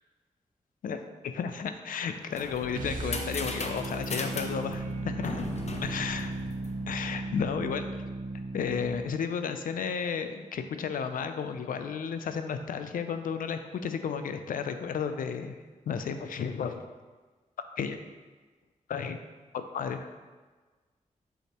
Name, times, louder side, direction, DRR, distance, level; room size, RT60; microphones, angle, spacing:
voice 1, 0.8-5.4 5.8-6.3 6.9-7.9 8.5-15.6 15.9-16.8 17.8-18.0 18.9-19.2 19.5-20.1, left 6 dB, 90° left, 8 dB, 0.4 m, -33 dB
sound 1, 2.0-7.1, left 3 dB, 55° left, 0.7 m, -38 dB
sound 2, 2.7-9.2, right 2 dB, 80° right, 0.7 m, -36 dB
6.3 x 5.5 x 3.0 m, 1.4 s
cardioid pair, 50°, 14 cm